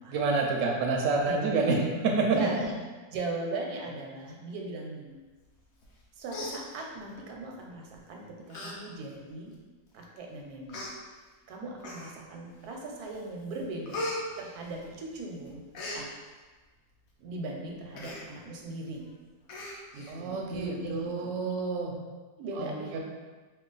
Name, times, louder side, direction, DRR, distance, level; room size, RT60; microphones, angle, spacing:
voice 1, 0.1-1.8 2.0-2.4 20.1-21.9 22.5-23.0, right 4 dB, 70° right, -1 dB, 0.9 m, -28 dB
voice 2, 1.2-1.8 2.3-2.8 3.1-5.2 6.1-9.5 9.9-10.8 11.5-14.1 14.4-15.6 15.9-16.1 17.2-19.0 19.9-21.3 22.4-23.0, right 2 dB, 85° right, 0 dB, 1.1 m, -38 dB
Human voice, 5.8-6.0 6.3-7.2 7.9-8.1 8.5-8.7 9.1-9.2 10.0-10.1 10.7-10.9 11.8-12.4 12.8-13.2 13.5-15.2 15.5-16.0 17.9-18.2 18.6-18.7 19.0-19.1 19.5-20.1 20.5-20.6, left 1 dB, 70° left, 1.0 m, -38 dB
3.0 x 2.2 x 3.8 m, 1.3 s
omnidirectional pair, 1.6 m